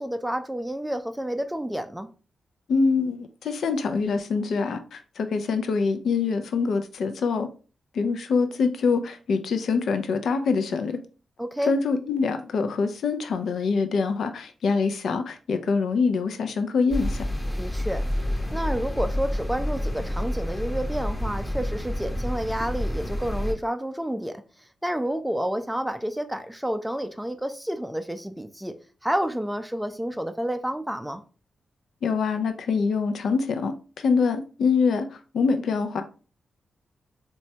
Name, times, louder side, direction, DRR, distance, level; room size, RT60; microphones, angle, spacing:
voice 1, 0.0-2.1 11.4-11.7 17.6-18.0 18.5-24.4 24.8-28.7 29.0-31.2, equal, 5° right, 0.3 m, -29 dB
voice 2, 2.7-7.5 7.9-11.0 11.7-17.2 32.0-36.0, left 5 dB, 80° left, 0.3 m, -25 dB
sound 1, 16.9-23.5, equal, 20° left, 0.7 m, -29 dB
3.0 x 2.2 x 2.7 m
cardioid pair, 60°, 0 cm